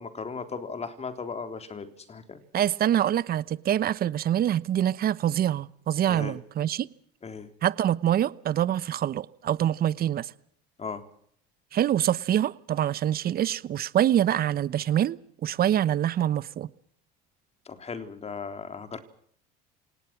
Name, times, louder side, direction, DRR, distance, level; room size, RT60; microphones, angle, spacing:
voice 1, 0.0-2.4 6.1-6.4 7.2-7.5 10.8-11.0 17.7-19.0, left 5 dB, 30° left, 3.7 m, -37 dB
voice 2, 2.5-6.9 7.6-10.3 11.7-16.7, right 11 dB, 45° right, 1.0 m, -25 dB
27.5 x 18.5 x 6.1 m
hypercardioid pair, 80°, 21 cm